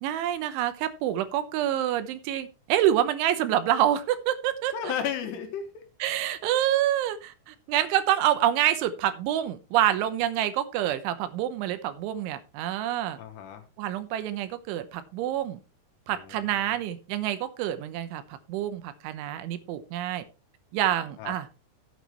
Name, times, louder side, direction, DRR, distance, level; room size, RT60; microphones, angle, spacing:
voice 1, 0.0-4.9 6.0-13.2 13.8-15.6 16.1-20.2 20.7-21.5, right 12 dB, 80° right, 12 dB, 3.3 m, -27 dB
voice 2, 4.7-5.8 13.2-13.7 16.1-16.8 21.2-21.4, left 8 dB, 75° left, 6 dB, 3.0 m, -34 dB
14.0 x 8.5 x 3.1 m, 0.30 s
omnidirectional pair, 5.5 m